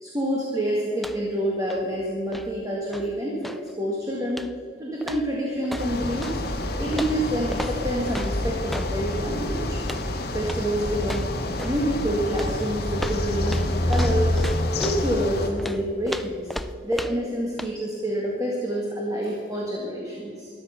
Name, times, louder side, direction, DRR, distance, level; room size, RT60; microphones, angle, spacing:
voice 1, 0.0-4.4 4.8-6.4 6.8-9.8 10.3-11.3 11.6-14.5 14.8-16.5 16.8-20.5, equal, 20° right, -3 dB, 1.9 m, -27 dB
sound 1, 0.9-1.4 1.6-3.7 4.3-4.7 5.0-6.4 6.9-8.9 9.8-10.1 10.4-10.7 11.0-11.8 12.4-15.0 15.6-17.3 17.6-17.7, equal, ahead, 0.3 m, -36 dB
sound 2, 5.8-15.5, left 1 dB, 60° left, 1.5 m, -27 dB
13.5 x 12.0 x 5.8 m, 2.4 s
head